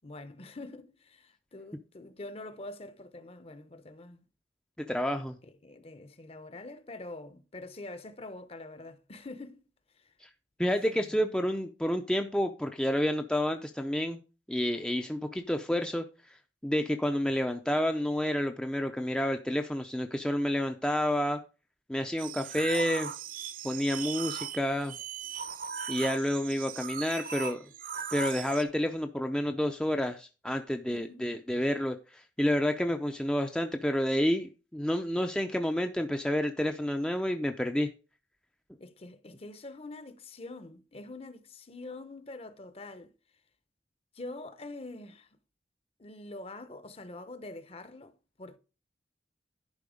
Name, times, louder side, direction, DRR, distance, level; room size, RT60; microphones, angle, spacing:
voice 1, 0.0-4.2 5.4-9.6 9.9-10.1 10.9-11.2 30.9-31.2 38.8-43.1 44.1-45.3 46.0-48.6, left 2 dB, 35° left, 0.8 m, -45 dB
voice 2, 4.8-5.4 10.2-10.3 10.6-14.2 14.5-16.0 16.6-21.4 21.9-23.1 23.6-24.9 25.9-27.6 28.1-37.9, equal, 5° left, 0.5 m, -29 dB
sound 1, 22.2-28.6, right 7 dB, 50° right, 0.8 m, -38 dB
10.5 x 4.5 x 5.0 m
head